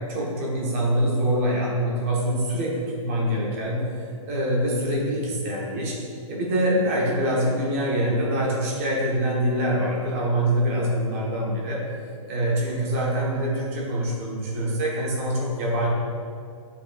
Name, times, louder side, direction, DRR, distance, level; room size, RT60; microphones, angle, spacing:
voice 1, 0.1-3.8 4.3-5.9 6.3-11.8 12.3-15.9, right 1 dB, 25° right, -4 dB, 1.0 m, -24 dB
8.1 x 5.6 x 2.3 m, 2.3 s
hypercardioid pair, 180°, 18 cm